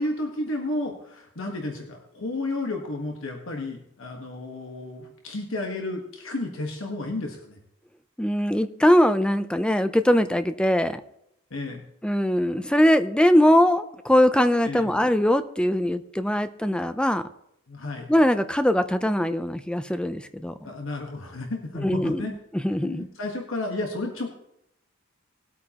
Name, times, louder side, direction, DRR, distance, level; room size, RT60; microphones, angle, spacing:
voice 1, 0.0-7.6 11.5-11.8 14.6-14.9 17.7-18.1 20.6-22.3 22.8-24.3, left 2 dB, 65° left, 1 dB, 1.4 m, -32 dB
voice 2, 8.2-11.0 12.0-17.2 18.1-20.7 21.8-22.2 22.5-23.1, equal, 5° left, 10 dB, 0.4 m, -21 dB
19.0 x 8.5 x 3.0 m, 0.80 s
head